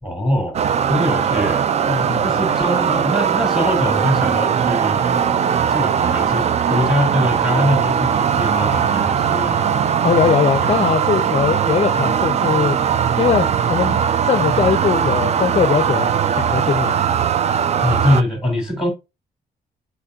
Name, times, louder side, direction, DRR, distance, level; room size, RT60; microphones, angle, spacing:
voice 1, 0.0-0.6 0.9-1.7 2.2-5.2 5.7-9.7 10.6-10.7 17.8-18.9, left 1 dB, 5° right, 2.5 m, -22 dB
sound 1, 0.5-18.2, right 8 dB, 40° right, 0.4 m, -19 dB
voice 2, 1.9-2.2 5.2-5.6 10.0-12.8 13.2-16.9, left 7 dB, 40° left, 0.5 m, -20 dB
4.4 x 4.0 x 2.4 m
cardioid pair, 95°, 17 cm